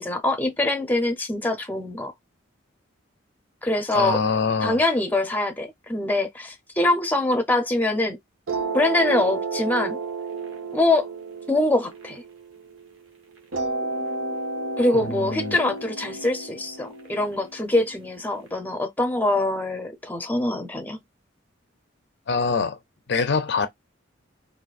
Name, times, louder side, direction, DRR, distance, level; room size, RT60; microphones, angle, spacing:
voice 1, 0.0-2.1 3.6-4.2 4.6-8.2 8.7-10.0 10.7-11.1 11.5-12.2 14.8-21.0, left 2 dB, 10° left, 0.6 m, -24 dB
voice 2, 3.9-4.8 15.0-15.6 22.3-22.8 23.1-23.7, left 5 dB, 55° left, 0.5 m, -24 dB
sound 1, 8.5-12.9 13.5-18.5, right 3 dB, 85° right, 1.3 m, -32 dB
4.0 x 2.6 x 2.4 m
head